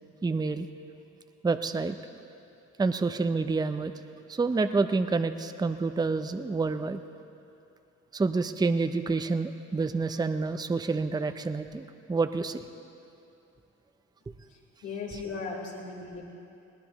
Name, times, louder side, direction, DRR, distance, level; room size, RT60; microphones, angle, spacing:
voice 1, 0.2-0.7 1.4-2.0 2.8-3.9 4.3-7.0 8.1-12.6, right 4 dB, 15° right, 9 dB, 0.5 m, -28 dB
voice 2, 14.5-16.2, left 4 dB, 80° left, -4 dB, 4.0 m, -37 dB
20.5 x 17.5 x 3.0 m, 2.7 s
cardioid pair, 90°, 30 cm